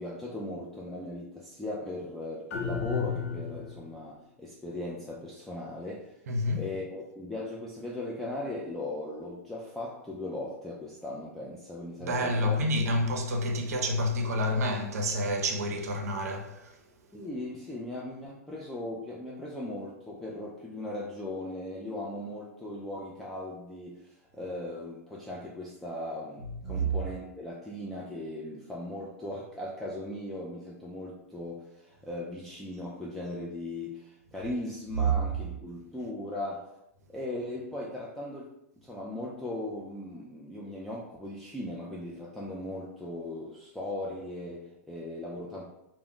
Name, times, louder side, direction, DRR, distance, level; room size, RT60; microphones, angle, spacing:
voice 1, 0.0-6.1 6.6-12.6 17.1-36.7 37.1-45.7, left 1 dB, 5° left, 0.3 m, -38 dB
sound 1, 2.5-4.0, left 6 dB, 65° left, 0.5 m, -33 dB
voice 2, 6.3-6.7 12.0-16.7 26.6-26.9 35.0-35.1, equal, 75° right, 0.5 m, -28 dB
2.2 x 2.0 x 3.6 m
hypercardioid pair, 120°, 8 cm